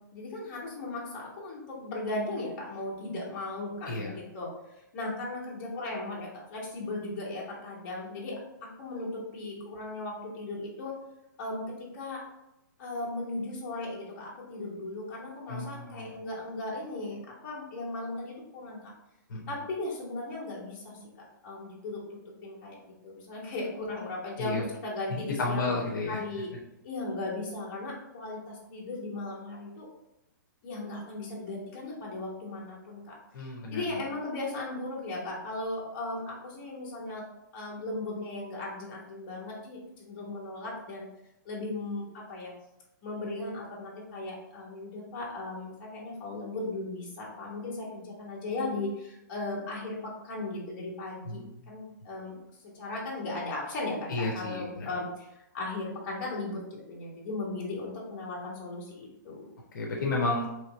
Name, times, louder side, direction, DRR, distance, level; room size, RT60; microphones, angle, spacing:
voice 1, 0.1-4.5 4.9-10.9 11.4-12.2 12.8-18.9 19.5-21.0 21.4-25.7 26.1-26.5 26.8-29.9 30.6-33.1 33.7-37.2 37.5-41.1 41.4-42.5 43.0-52.3 52.8-59.5, left 2 dB, 35° left, -4 dB, 1.4 m, -37 dB
voice 2, 15.5-16.1 19.3-19.4 24.4-24.6 25.4-26.2 33.3-33.8 51.3-51.5 54.1-54.9 59.7-60.5, left 3 dB, 70° left, -2 dB, 0.9 m, -31 dB
3.2 x 3.0 x 3.9 m, 0.88 s
hypercardioid pair, 160°, 11 cm